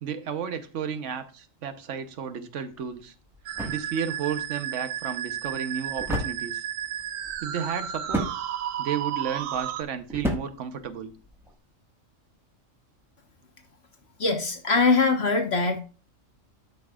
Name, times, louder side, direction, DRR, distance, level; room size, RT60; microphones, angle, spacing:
voice 1, 0.0-3.1 3.7-6.6 7.4-8.3 8.8-11.1, right 7 dB, 70° right, 9 dB, 1.2 m, -32 dB
sound 1, 2.7-11.6, equal, ahead, 1.5 m, -36 dB
Musical instrument, 3.5-9.8, right 10 dB, 85° right, 1.0 m, -33 dB
voice 2, 14.2-15.8, left 4 dB, 55° left, 4 dB, 1.5 m, -22 dB
13.0 x 5.9 x 2.4 m, 0.36 s
omnidirectional pair, 1.3 m